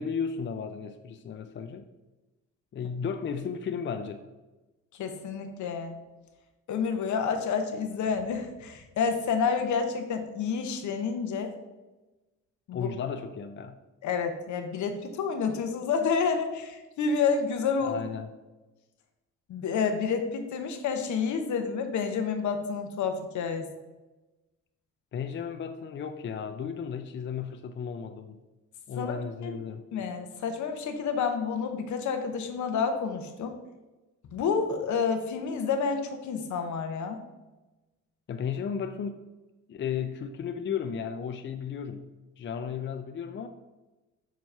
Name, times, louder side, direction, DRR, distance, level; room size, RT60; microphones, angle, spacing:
voice 1, 0.0-1.8 2.7-4.2 12.7-13.8 17.8-18.3 25.1-28.4 28.9-29.8 38.3-39.3 39.7-42.1 42.4-43.5, left 7 dB, 40° left, 7 dB, 0.5 m, -34 dB
voice 2, 5.0-6.0 6.7-11.5 12.7-12.9 14.0-17.9 19.5-23.7 29.0-29.2 29.4-29.5 29.9-33.6 34.3-37.2, left 5 dB, 75° left, 6 dB, 1.0 m, -29 dB
7.1 x 3.1 x 5.4 m, 1.1 s
cardioid pair, 90°, 30 cm